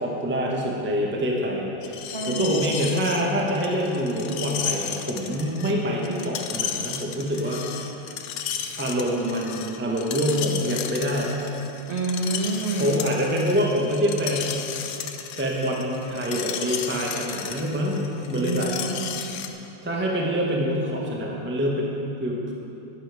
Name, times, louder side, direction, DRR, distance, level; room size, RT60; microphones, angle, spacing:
voice 1, 0.0-7.8 8.8-11.3 12.8-14.6 15.4-18.7 19.8-22.5, equal, 15° right, -2 dB, 0.4 m, -26 dB
Screech, 1.8-19.5, left 8 dB, 70° left, 1.2 m, -34 dB
voice 2, 2.1-2.7 11.9-13.0 18.3-19.1, right 2 dB, 35° right, -2 dB, 1.2 m, -28 dB
11.5 x 10.0 x 4.8 m, 2.9 s
omnidirectional pair, 2.4 m